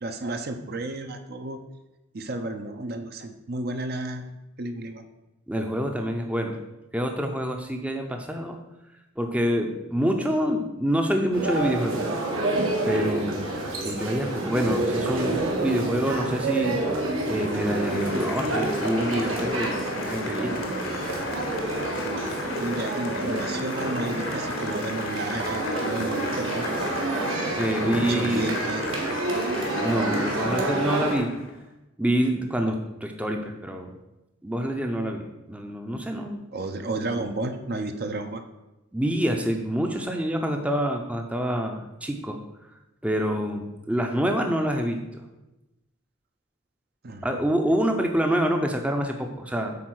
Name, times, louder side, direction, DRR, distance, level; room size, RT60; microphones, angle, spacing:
voice 1, 0.0-1.6 2.1-5.0 19.8-19.9 22.1-26.8 27.7-28.8 36.5-38.4 47.0-47.3, right 2 dB, 50° right, 6 dB, 0.7 m, -32 dB
voice 2, 5.5-6.6 6.9-8.6 9.2-12.0 12.8-13.4 13.8-16.8 17.3-20.7 27.6-28.5 29.8-31.4 32.0-33.9 34.4-35.2 35.5-36.4 38.9-42.4 43.0-45.2 47.2-49.7, equal, 5° right, 4 dB, 0.6 m, -26 dB
sound 1, 11.3-31.2, right 2 dB, 80° right, 1.9 m, -28 dB
Applause, 16.8-31.6, left 4 dB, 75° left, 1.2 m, -36 dB
8.5 x 4.2 x 6.3 m, 0.99 s
head